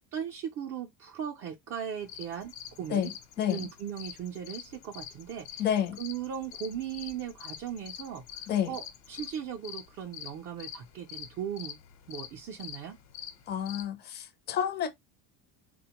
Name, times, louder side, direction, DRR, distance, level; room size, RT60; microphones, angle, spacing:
voice 1, 0.1-2.5 2.8-3.1 3.5-5.7 6.0-11.8 12.1-13.0, right 8 dB, 35° right, 0.4 m, -38 dB
sound 1, 2.0-13.8, left 8 dB, 85° left, 1.0 m, -46 dB
voice 2, 3.4-3.7 5.6-6.0 8.5-8.7 13.5-14.9, left 9 dB, 25° left, 0.4 m, -29 dB
4.0 x 2.1 x 2.8 m
cardioid pair, 165°, 43 cm